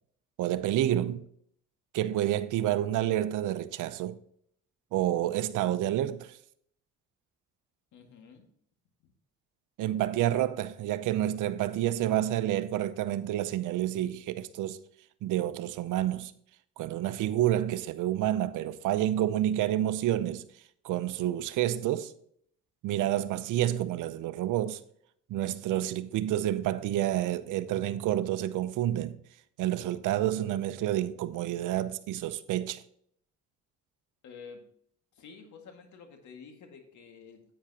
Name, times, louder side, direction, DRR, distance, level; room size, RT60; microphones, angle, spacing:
voice 1, 0.4-1.2 1.9-4.2 4.9-6.4 9.8-14.8 15.2-16.3 16.8-20.4 20.8-22.1 22.8-24.8 25.3-29.2 29.6-32.8, right 12 dB, 85° right, 0.7 m, -29 dB
voice 2, 7.9-8.5 34.2-34.6 35.1-37.4, left 5 dB, 70° left, 2.0 m, -49 dB
10.0 x 8.7 x 2.9 m
cardioid pair, 90°, 30 cm